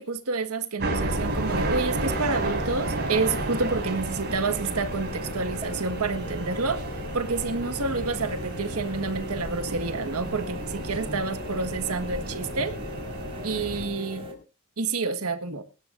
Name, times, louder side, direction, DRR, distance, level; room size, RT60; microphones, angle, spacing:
voice 1, 0.0-6.8 7.1-12.7 13.4-14.3 14.8-15.6, right 4 dB, 80° right, 8 dB, 1.6 m, -29 dB
sound 1, 0.8-13.9, right 2 dB, 50° right, 6.5 m, -32 dB
sound 2, 1.1-14.3, left 2 dB, 25° right, 4.5 m, -39 dB
24.5 x 13.0 x 2.6 m, 0.32 s
head